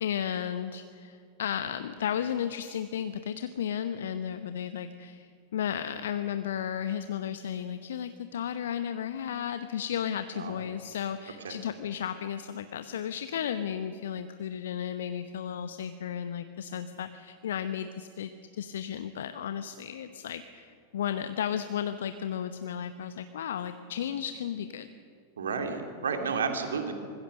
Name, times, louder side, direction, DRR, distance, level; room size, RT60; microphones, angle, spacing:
voice 1, 0.0-24.9, left 9 dB, 60° left, 10 dB, 0.9 m, -34 dB
voice 2, 25.4-26.9, right 5 dB, 65° right, 4 dB, 2.5 m, -31 dB
25.0 x 21.0 x 6.5 m, 2.3 s
figure-of-eight pair, 90°, 0 cm